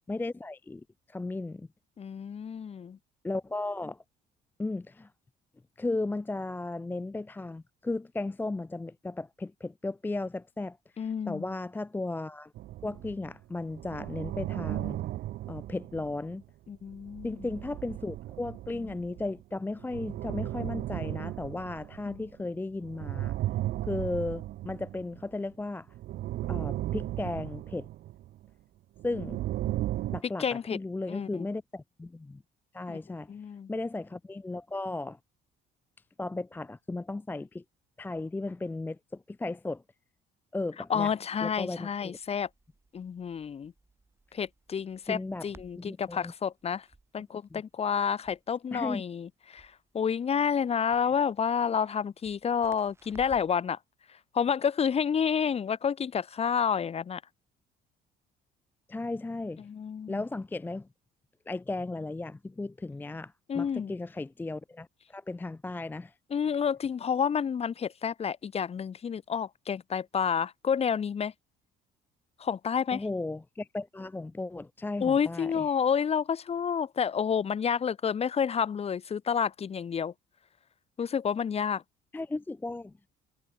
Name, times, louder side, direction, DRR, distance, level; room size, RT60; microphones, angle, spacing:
voice 1, 0.0-1.7 3.2-4.0 4.6-5.1 5.8-12.5 12.8-15.0 15.5-16.4 17.2-23.4 23.8-25.9 26.5-27.9 29.0-29.4 30.1-30.4 30.7-32.4 32.7-33.3 33.7-35.2 36.2-37.6 38.0-39.8 40.5-41.1 41.4-42.2 45.1-45.5 45.8-46.3 47.5-47.6 48.7-49.0 58.9-59.7 60.1-60.9 61.5-66.1 72.9-75.7 82.1-82.9, left 2 dB, 10° left, 0.5 m, -35 dB
voice 2, 2.0-3.0 11.0-11.5 16.7-17.5 22.1-22.2 30.4-30.8 31.1-31.5 32.9-33.0 33.3-33.7 40.9-42.5 42.9-43.7 44.3-46.9 47.1-53.8 54.3-57.2 59.6-60.2 63.5-63.9 66.3-71.3 72.4-73.0 75.0-80.1 81.0-81.8, left 7 dB, 35° left, 1.7 m, -29 dB
sound 1, 12.6-13.3 13.6-16.4 16.9-19.4 19.8-22.4 22.8-25.4 25.9-28.5 29.0-30.2, right 14 dB, 65° right, 0.7 m, -36 dB
Crackle, 42.1-53.6, right 2 dB, 15° right, 7.1 m, -59 dB
cardioid pair, 110°, 17 cm